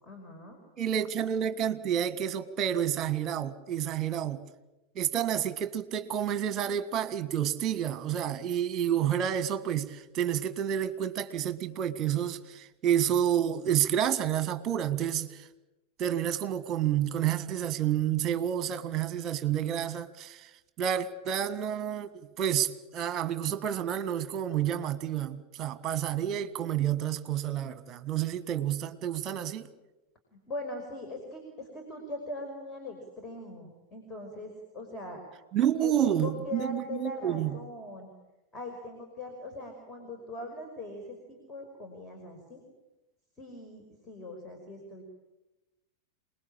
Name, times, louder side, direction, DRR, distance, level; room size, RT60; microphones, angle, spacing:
voice 1, 0.0-0.6 30.3-35.2 35.8-38.1 38.5-42.6 43.4-45.0, left 2 dB, 20° left, 5.2 m, -41 dB
voice 2, 0.8-4.4 5.0-15.5 16.0-20.5 20.8-29.7 35.5-37.5, right 10 dB, 30° right, 1.7 m, -29 dB
28.0 x 20.5 x 8.8 m
figure-of-eight pair, 90°, 0 cm